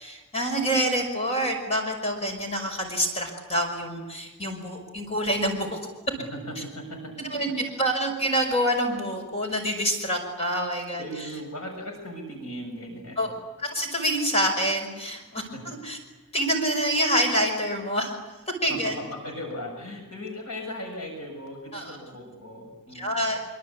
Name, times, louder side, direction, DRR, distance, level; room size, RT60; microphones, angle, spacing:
voice 1, 0.0-5.8 7.2-11.0 13.2-13.3 13.6-15.5 15.8-16.0 16.3-18.1 18.6-19.0 21.7-22.0 22.9-23.4, equal, 30° left, 4 dB, 5.4 m, -26 dB
voice 2, 6.3-7.1 11.0-13.3 15.5-15.6 18.7-18.8 19.1-23.3, equal, 75° left, 3 dB, 6.7 m, -38 dB
25.5 x 25.0 x 8.5 m, 1.2 s
head